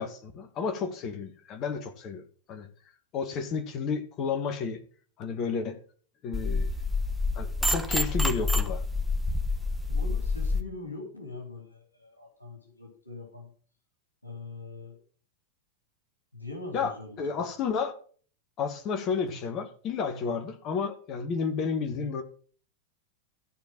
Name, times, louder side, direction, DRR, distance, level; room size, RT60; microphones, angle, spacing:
voice 1, 0.0-2.2 2.5-2.7 3.1-4.8 5.2-5.8 6.2-6.7 7.4-8.8 16.7-17.9 18.6-22.2, left 5 dB, 35° left, 1.8 m, -31 dB
sound 1, 6.3-10.6, left 3 dB, ahead, 1.2 m, -28 dB
voice 2, 9.9-13.5 14.2-15.0 16.3-17.2, left 3 dB, 85° left, 3.4 m, -42 dB
14.0 x 4.7 x 7.4 m
figure-of-eight pair, 90°, 0 cm